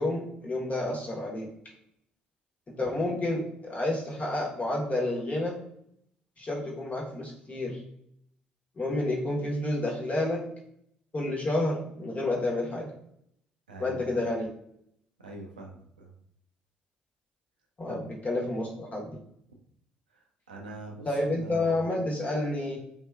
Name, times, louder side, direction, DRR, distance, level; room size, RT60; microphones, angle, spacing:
voice 1, 0.0-1.5 2.7-5.6 6.4-7.8 8.8-10.5 11.1-13.0 13.8-14.5 17.8-19.1 21.0-22.8, left 2 dB, 30° left, -2 dB, 1.1 m, -30 dB
voice 2, 13.7-14.3 15.2-16.2 17.9-18.1 20.1-22.0, right 2 dB, 90° right, 0 dB, 0.5 m, -44 dB
3.3 x 2.8 x 2.3 m, 0.71 s
hypercardioid pair, 50°, 4 cm